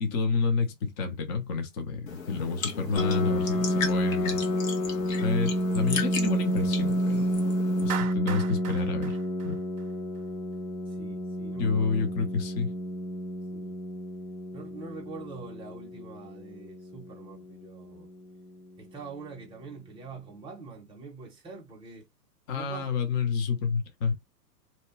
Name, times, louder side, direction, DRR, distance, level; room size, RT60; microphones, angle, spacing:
voice 1, 0.0-4.4 5.2-7.3 7.8-9.2 9.4-9.6 11.6-12.7 22.5-24.1, left 4 dB, 25° left, 0.7 m, -29 dB
sound 1, 2.1-7.9, left 5 dB, 55° left, 1.2 m, -36 dB
Piano, 3.0-18.4, equal, 85° left, 1.1 m, -30 dB
Clapping, 7.9-10.2, right 9 dB, 50° right, 0.6 m, -38 dB
voice 2, 10.9-12.1 13.5-13.8 14.5-18.1 18.8-22.1 22.5-23.0, right 4 dB, 10° right, 0.8 m, -44 dB
2.8 x 2.2 x 3.0 m
hypercardioid pair, 125°, 48 cm